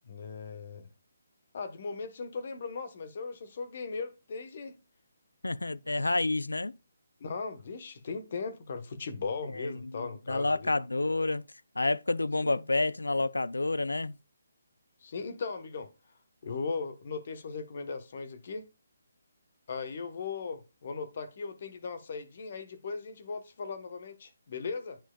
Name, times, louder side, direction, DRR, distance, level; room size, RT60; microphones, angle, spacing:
voice 1, 0.0-0.9 1.5-4.7 7.2-10.7 12.4-12.6 15.0-15.9 16.4-18.7 19.7-25.0, left 4 dB, 50° left, 1.1 m, -38 dB
voice 2, 5.4-6.7 9.5-11.4 11.8-14.2, left 2 dB, 85° left, 0.4 m, -29 dB
10.5 x 4.4 x 2.3 m
figure-of-eight pair, 150°, 0 cm